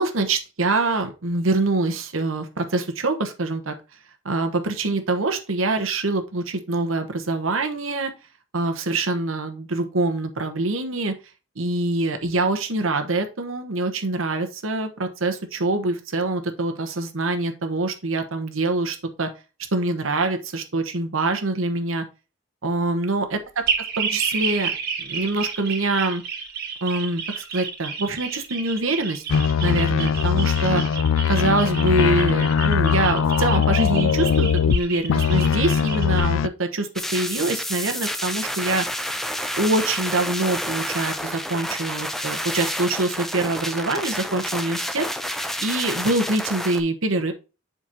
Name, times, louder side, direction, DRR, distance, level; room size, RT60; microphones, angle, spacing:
voice 1, 0.0-3.7 4.2-8.1 8.5-11.1 11.6-19.3 19.7-22.0 22.6-23.4 24.0-24.7 25.0-26.2 26.8-29.2 29.6-30.8 31.3-38.8 39.6-45.3 45.6-47.3, right 2 dB, 90° right, 6 dB, 1.1 m, -24 dB
sound 1, 23.7-36.2, right 6 dB, 50° right, 1.7 m, -31 dB
sound 2, 29.3-34.8 35.1-36.5, left 7 dB, 80° left, 0.3 m, -21 dB
sound 3, 37.0-46.8, equal, ahead, 0.5 m, -29 dB
7.6 x 5.2 x 2.8 m, 0.30 s
head